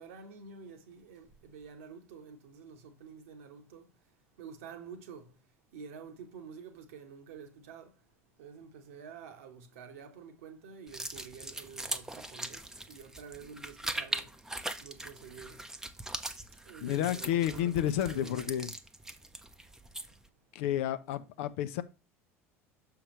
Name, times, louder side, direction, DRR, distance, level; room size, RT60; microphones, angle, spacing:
voice 1, 0.0-3.8 4.4-5.3 5.7-7.9 8.4-12.6 12.9-14.3 14.8-15.6 16.7-18.6, right 6 dB, 65° right, 1.2 m, -49 dB
sound 1, 10.9-20.3, right 1 dB, 5° right, 0.8 m, -41 dB
voice 2, 16.8-18.7 20.5-21.8, left 11 dB, 60° left, 0.6 m, -31 dB
6.6 x 5.8 x 3.1 m
figure-of-eight pair, 65°, 8 cm